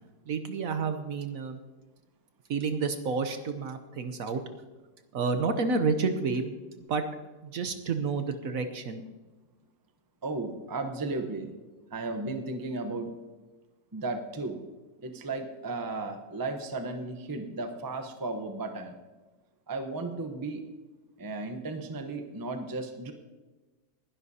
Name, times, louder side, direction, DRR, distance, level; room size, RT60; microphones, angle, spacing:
voice 1, 0.3-1.6 2.5-4.4 5.1-6.5 6.9-7.0 7.4-9.0, right 4 dB, 60° right, 8 dB, 1.1 m, -30 dB
voice 2, 10.2-11.5 11.9-13.1 13.9-14.6 15.0-18.9 19.7-20.6 21.2-23.1, right 3 dB, 20° right, 6 dB, 0.6 m, -35 dB
20.0 x 11.5 x 2.8 m, 1.2 s
omnidirectional pair, 1.9 m